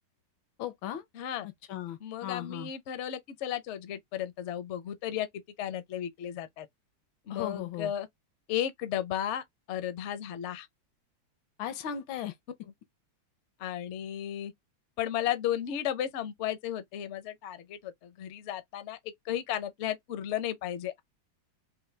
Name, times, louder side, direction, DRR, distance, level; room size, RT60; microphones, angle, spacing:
voice 1, 0.6-1.0 1.7-2.7 7.3-7.9 11.6-12.3, left 10 dB, 85° left, 1.6 m, -36 dB
voice 2, 1.1-1.5 2.0-6.7 7.3-8.1 8.5-10.7 13.6-14.5 15.0-19.0 19.2-21.0, left 11 dB, 65° left, 0.7 m, -34 dB
4.1 x 2.6 x 3.3 m
omnidirectional pair, 2.1 m